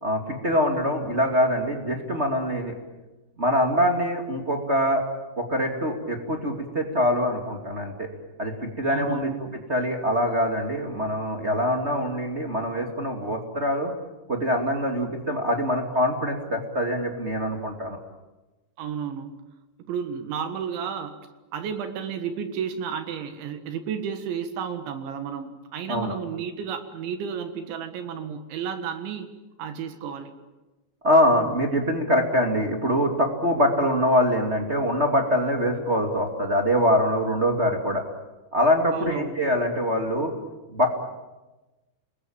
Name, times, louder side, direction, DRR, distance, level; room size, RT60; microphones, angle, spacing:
voice 1, 0.0-2.7 3.4-5.0 5.4-8.1 8.4-13.9 14.3-18.0 25.9-26.2 31.0-38.0 38.5-40.3 40.7-40.9, equal, 25° right, 1 dB, 1.5 m, -24 dB
voice 2, 8.9-9.4 18.8-19.4 19.8-21.1 21.5-29.3 29.6-30.3 38.9-39.5, right 7 dB, 75° right, 8 dB, 3.9 m, -32 dB
29.5 x 21.0 x 8.8 m, 1.1 s
omnidirectional pair, 5.4 m